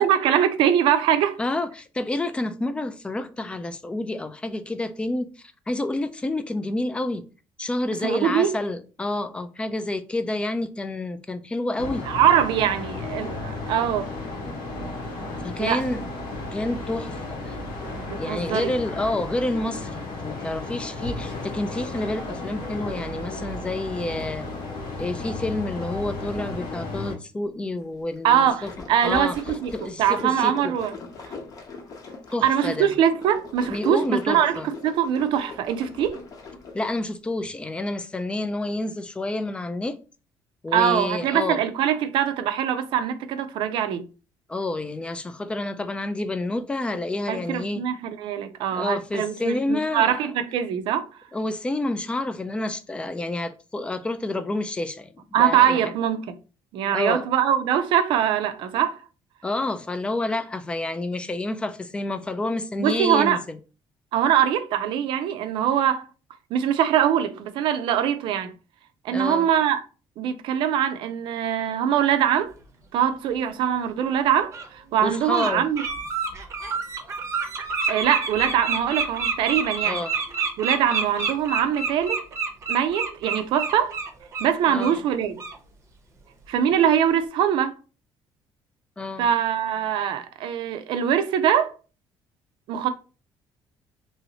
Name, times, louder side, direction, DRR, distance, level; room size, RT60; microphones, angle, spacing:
voice 1, 0.0-1.4 8.0-8.5 12.1-14.1 15.6-15.8 18.0-18.7 28.2-29.7 30.0-30.9 32.4-36.2 40.7-44.0 47.3-51.1 55.3-56.3 56.7-59.0 62.8-63.4 64.1-66.1 66.5-68.5 69.0-69.8 70.2-72.5 72.9-75.8 77.9-80.0 80.6-82.2 82.7-84.0 84.4-85.4 86.5-87.7 89.2-91.7 92.7-92.9, right 9 dB, 70° right, 0.4 m, -22 dB
voice 2, 1.4-7.2 7.6-12.1 15.4-16.0 16.5-17.6 18.1-24.5 25.0-28.7 29.0-29.3 29.7-30.7 32.3-32.9 33.7-34.7 36.7-40.0 40.6-41.6 44.5-47.8 48.7-50.3 51.3-55.1 55.4-55.8 56.9-57.2 59.4-63.6 69.1-69.5 75.0-75.7 79.8-80.1 84.7-85.1 89.0-89.3, left 2 dB, 10° left, 0.3 m, -29 dB
sound 1, 11.8-27.1, left 2 dB, 85° left, 1.2 m, -34 dB
sound 2, 28.1-37.0, left 4 dB, 45° left, 0.8 m, -41 dB
Bird, 73.7-73.8 74.5-74.7 75.1-75.5 75.8-84.5 84.8-85.0 85.4-85.6, right 5 dB, 35° right, 0.7 m, -28 dB
3.1 x 2.7 x 2.8 m
cardioid pair, 140°, 9 cm